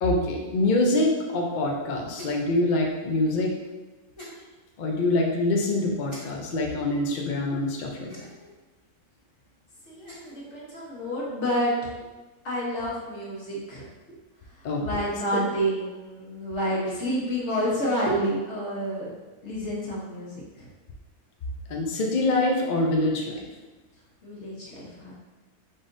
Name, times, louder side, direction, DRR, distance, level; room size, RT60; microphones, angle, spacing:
voice 1, 0.0-3.5 4.8-8.3 14.6-14.8 21.7-23.4, left 2 dB, 70° left, 0 dB, 0.4 m, -25 dB
sound 1, 2.1-2.5 4.1-4.4 6.1-6.2 8.0-8.5 9.8-10.4, left 1 dB, 20° left, 1.3 m, -44 dB
voice 2, 9.9-11.7 12.4-14.2 14.5-19.1 19.4-20.7 24.2-25.1, equal, 50° left, -5 dB, 1.4 m, -29 dB
5.1 x 3.7 x 2.6 m, 1.2 s
omnidirectional pair, 1.6 m